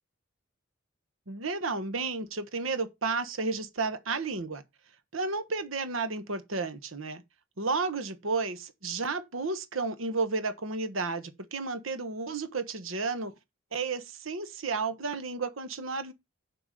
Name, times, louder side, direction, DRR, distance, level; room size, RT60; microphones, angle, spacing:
voice 1, 1.3-4.6 5.1-7.2 7.6-13.3 13.7-16.1, right 4 dB, 75° right, 1.3 m, -32 dB
7.6 x 4.6 x 6.7 m
head